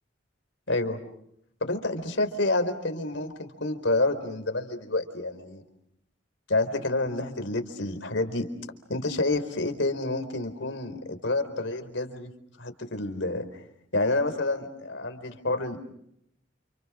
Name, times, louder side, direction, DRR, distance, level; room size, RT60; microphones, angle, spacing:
voice 1, 0.7-1.0 1.6-5.6 6.5-8.5 8.9-12.3 12.6-13.4 13.9-15.8, left 2 dB, 70° left, 8 dB, 4.3 m, -28 dB
29.5 x 29.5 x 6.3 m, 0.74 s
head